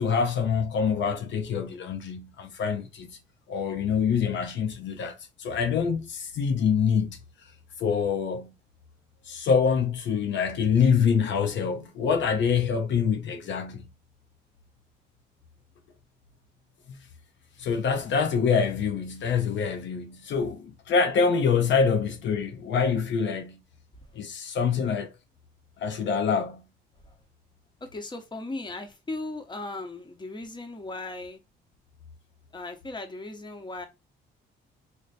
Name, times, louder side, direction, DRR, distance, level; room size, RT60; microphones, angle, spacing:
voice 1, 0.0-3.2 3.5-7.2 7.8-8.5 9.3-13.9 17.6-23.6 24.1-25.1 25.8-26.6, left 6 dB, 65° left, 0.7 m, -25 dB
voice 2, 27.8-31.4 32.5-33.9, left 2 dB, 20° left, 1.0 m, -37 dB
3.2 x 2.2 x 4.0 m
cardioid pair, 90°, 20 cm